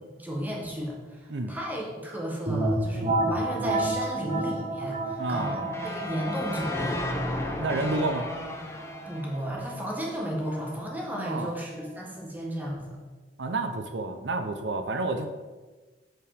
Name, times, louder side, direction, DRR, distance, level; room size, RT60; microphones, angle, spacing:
voice 1, 0.2-7.0 9.1-13.0, equal, 10° right, -3 dB, 1.6 m, -34 dB
sound 1, 2.5-12.0, right 2 dB, 35° right, 0.7 m, -32 dB
sound 2, 5.2-10.3, left 2 dB, 15° left, 0.8 m, -34 dB
voice 2, 5.2-5.6 7.6-8.3 11.1-11.5 13.4-15.3, right 2 dB, 90° right, 7 dB, 0.7 m, -30 dB
7.6 x 5.1 x 5.0 m, 1.3 s
head